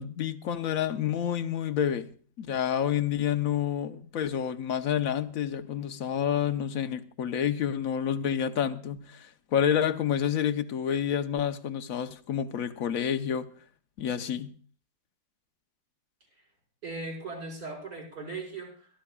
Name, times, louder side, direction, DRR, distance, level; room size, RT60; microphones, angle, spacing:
voice 1, 0.0-2.1 2.4-13.5 14.0-14.5, left 9 dB, 60° left, 1.1 m, -29 dB
voice 2, 16.8-18.9, right 3 dB, 55° right, 5.8 m, -38 dB
23.0 x 14.0 x 2.3 m
omnidirectional pair, 1.9 m